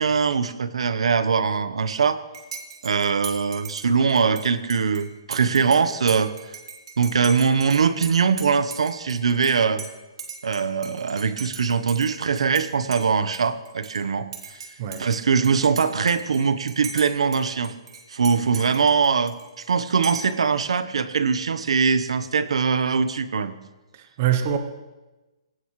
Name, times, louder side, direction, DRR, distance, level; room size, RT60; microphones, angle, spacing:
voice 1, 0.0-2.2 2.8-6.3 7.0-9.8 10.4-14.6 15.0-17.7 18.1-23.5, right 5 dB, 85° right, 12 dB, 1.1 m, -22 dB
Dishes pots and pans / Cutlery silverware / Chink clink, 2.3-12.6 12.9-14.0 14.3-17.4 17.6-19.6 20.0-20.4, right 5 dB, 60° right, 2.7 m, -39 dB
voice 2, 24.0-24.6, right 10 dB, 25° right, 7 dB, 0.9 m, -24 dB
19.0 x 17.0 x 3.3 m, 1.1 s
hypercardioid pair, 175°, 3 cm